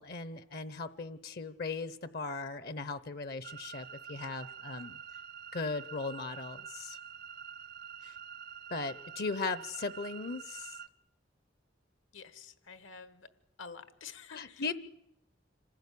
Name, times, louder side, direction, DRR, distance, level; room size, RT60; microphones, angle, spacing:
voice 1, 0.0-5.0 5.5-7.0 8.0-8.2 8.7-10.8 14.3-14.7, left 3 dB, 55° left, 14 dB, 0.8 m, -38 dB
sound 1, 3.4-10.9, right 8 dB, 55° right, 0.7 m, -47 dB
voice 2, 12.1-13.3 13.6-14.7, left 5 dB, 80° left, 12 dB, 1.5 m, -49 dB
26.5 x 15.5 x 8.4 m, 0.82 s
head